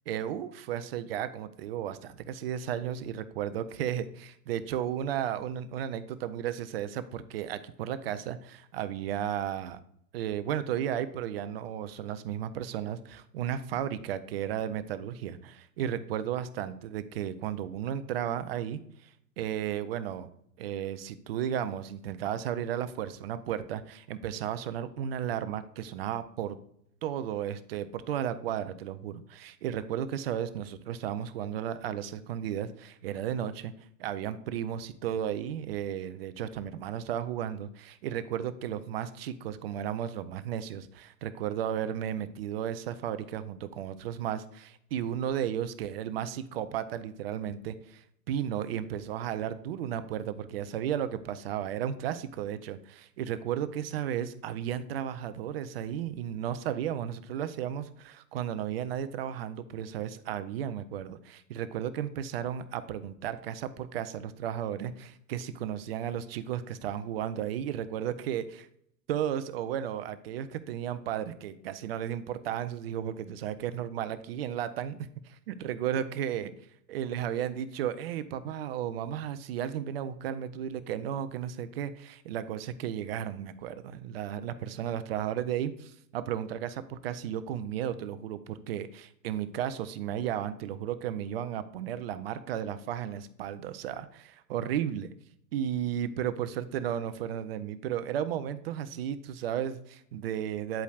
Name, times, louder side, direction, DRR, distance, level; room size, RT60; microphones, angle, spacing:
voice 1, 0.1-9.8 10.1-19.1 19.4-20.3 20.6-26.6 27.0-33.7 34.0-68.7 69.1-76.5 76.9-95.1 95.5-100.8, right 10 dB, 40° right, 12 dB, 0.6 m, -34 dB
10.0 x 8.1 x 2.4 m, 0.70 s
figure-of-eight pair, 100°, 47 cm